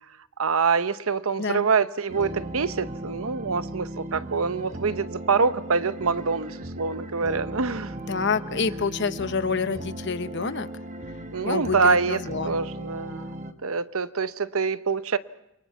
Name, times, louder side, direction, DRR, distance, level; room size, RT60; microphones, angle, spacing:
voice 1, 0.4-7.9 11.3-12.2 12.4-15.2, right 5 dB, 80° right, 0.8 m, -25 dB
sound 1, 2.1-13.5, right 1 dB, 35° right, 1.2 m, -37 dB
voice 2, 8.1-10.7 11.4-12.6, left 5 dB, 55° left, 0.9 m, -27 dB
29.0 x 23.0 x 5.9 m
head